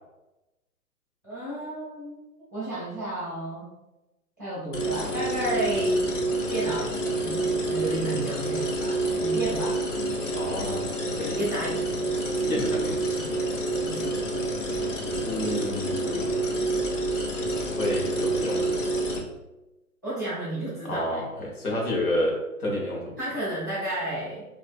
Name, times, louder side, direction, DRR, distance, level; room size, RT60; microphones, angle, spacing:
voice 1, 1.2-3.7 4.4-6.1 6.5-9.8 11.2-11.9 13.8-14.2 20.0-21.2 23.2-24.5, right 1 dB, 15° right, -12 dB, 0.4 m, -32 dB
sound 1, 4.7-19.2, right 2 dB, 55° left, 0.7 m, -28 dB
voice 2, 10.3-11.3 12.4-13.0 15.1-16.3 17.8-18.8 20.8-23.2, left 1 dB, 75° left, -2 dB, 1.1 m, -30 dB
2.6 x 2.5 x 2.3 m, 1.0 s
figure-of-eight pair, 130°, 44 cm